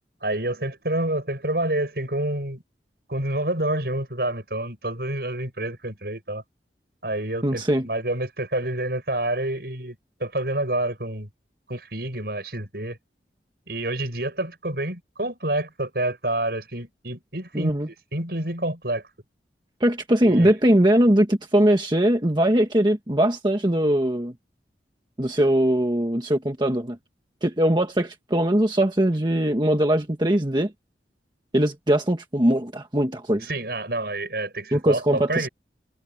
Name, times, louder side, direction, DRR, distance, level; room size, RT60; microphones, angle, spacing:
voice 1, 0.2-2.6 3.1-6.4 7.0-11.3 11.7-13.0 13.7-17.8 18.1-19.0 20.2-20.5 33.4-35.5, right 1 dB, 60° right, 7.2 m, -28 dB
voice 2, 7.4-7.9 17.5-17.9 19.8-24.3 25.2-27.0 27.4-30.7 31.5-33.5 34.7-35.5, right 1 dB, 25° right, 1.5 m, -21 dB
head